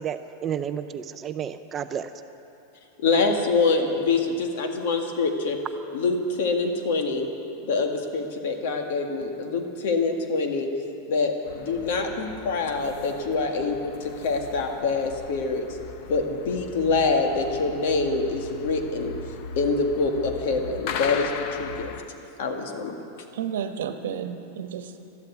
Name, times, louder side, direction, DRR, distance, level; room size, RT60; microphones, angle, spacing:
voice 1, 0.0-2.1, right 8 dB, 20° right, 10 dB, 0.4 m, -31 dB
voice 2, 3.0-5.6 5.9-7.3 7.6-10.7 11.1-15.7 16.1-19.1 19.6-21.3 21.6-21.9 22.4-23.0, left 4 dB, 60° left, 4 dB, 1.8 m, -25 dB
sound 1, 11.4-22.0, left 6 dB, 45° left, 0.8 m, -39 dB
voice 3, 23.3-25.0, right 8 dB, 85° right, 8 dB, 1.1 m, -32 dB
13.0 x 12.0 x 8.3 m, 2.8 s
supercardioid pair, 165°, 0 cm